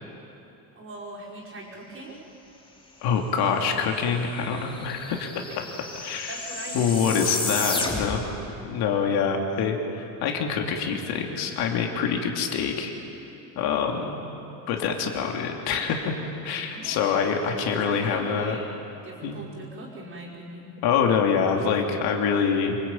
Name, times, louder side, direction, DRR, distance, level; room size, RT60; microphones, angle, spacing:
voice 1, 0.8-2.2 5.5-5.6 6.3-7.1 16.7-17.3 17.6-18.7 19.0-20.8, right 2 dB, 25° right, -4 dB, 5.4 m, -40 dB
voice 2, 3.0-5.3 6.0-6.4 6.7-8.2 8.6-12.9 13.6-14.2 14.7-16.1 16.4-18.6 19.2-19.4 20.8-22.8, left 6 dB, 55° left, 2 dB, 3.0 m, -25 dB
sound 1, 3.8-3.9 4.1-8.3, left 3 dB, 10° left, 3.4 m, -32 dB
26.5 x 24.5 x 9.1 m, 2.8 s
cardioid pair, 165°, 46 cm